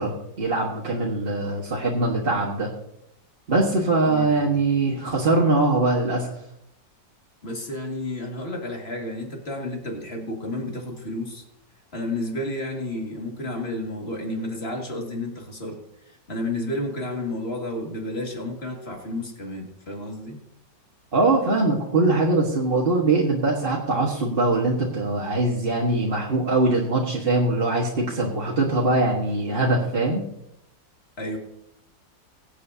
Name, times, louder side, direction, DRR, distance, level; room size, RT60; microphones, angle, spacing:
voice 1, 0.0-2.7 3.5-6.3 21.1-30.2, right 2 dB, 35° right, -4 dB, 1.6 m, -22 dB
voice 2, 4.0-4.6 7.4-11.4 11.9-15.8 16.1-20.4 31.2-31.4, left 1 dB, 35° left, 1 dB, 2.3 m, -31 dB
22.0 x 8.4 x 2.8 m, 0.80 s
omnidirectional pair, 1.9 m